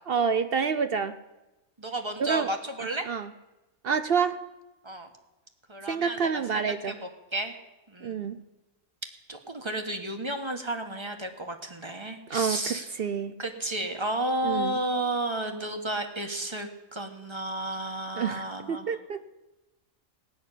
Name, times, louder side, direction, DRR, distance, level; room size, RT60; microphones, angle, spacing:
voice 1, 0.1-1.2 2.2-2.5 3.1-3.3 3.8-4.4 5.8-7.0 8.0-8.4 12.3-13.4 14.4-14.8 18.1-19.3, right 6 dB, 55° right, 10 dB, 0.8 m, -28 dB
voice 2, 1.8-3.1 4.8-5.1 5.7-7.0 7.3-7.6 7.9-8.3 9.3-12.9 13.4-18.9, right 1 dB, 20° right, 5 dB, 1.4 m, -32 dB
18.0 x 6.3 x 9.9 m, 1.0 s
omnidirectional pair, 1.4 m